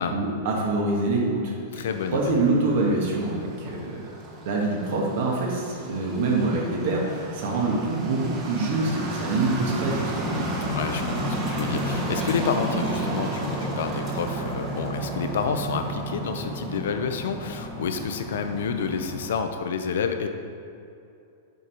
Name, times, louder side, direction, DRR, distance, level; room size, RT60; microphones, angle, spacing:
voice 1, 0.0-1.9 2.1-4.1 4.4-10.5, right 2 dB, 60° right, -3 dB, 1.4 m, -25 dB
voice 2, 1.7-2.2 10.6-20.3, left 6 dB, 80° left, 7 dB, 0.7 m, -29 dB
sound 1, 1.9-19.4, right 1 dB, 25° right, 1.1 m, -32 dB
6.9 x 4.7 x 5.3 m, 2.6 s
supercardioid pair, 155°, 0 cm